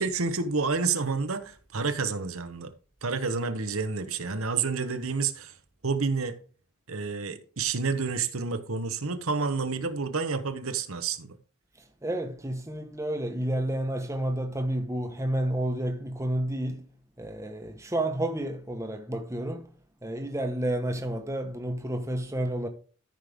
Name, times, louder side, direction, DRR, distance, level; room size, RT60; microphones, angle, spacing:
voice 1, 0.0-2.7 3.0-5.5 5.8-6.4 6.9-11.4, right 4 dB, 75° right, 1.1 m, -29 dB
voice 2, 12.0-16.9 17.2-19.7 20.0-22.7, right 1 dB, 15° right, 1.1 m, -30 dB
13.5 x 5.4 x 3.5 m
head